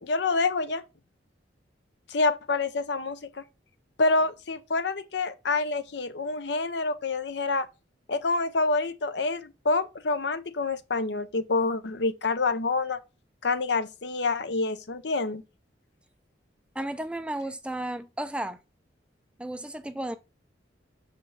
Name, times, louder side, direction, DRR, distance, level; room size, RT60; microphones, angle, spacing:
voice 1, 0.0-0.8 2.1-3.4 4.0-7.7 8.1-13.0 13.4-15.4, left 3 dB, 65° left, 0.7 m, -27 dB
voice 2, 16.8-18.6 19.4-20.2, right 1 dB, 5° right, 0.4 m, -33 dB
6.3 x 5.0 x 3.2 m
head